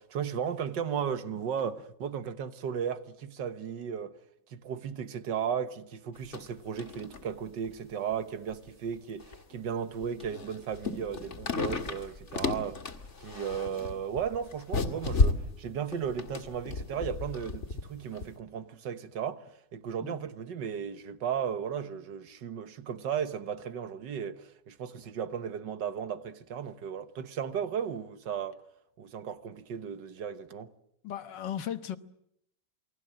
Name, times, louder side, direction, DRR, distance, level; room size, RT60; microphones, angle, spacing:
voice 1, 0.0-4.2 4.5-12.9 13.2-28.6 29.0-30.7, right 7 dB, 90° right, 1.9 m, -35 dB
sound 1, 6.1-6.5 6.8-7.2 7.6-7.7 8.5-8.6 9.2-9.5 10.0-17.8 18.1-18.2, left 3 dB, 40° left, 2.1 m, -32 dB
voice 2, 31.0-32.0, left 9 dB, 90° left, 1.9 m, -36 dB
28.5 x 21.5 x 7.6 m
omnidirectional pair, 1.9 m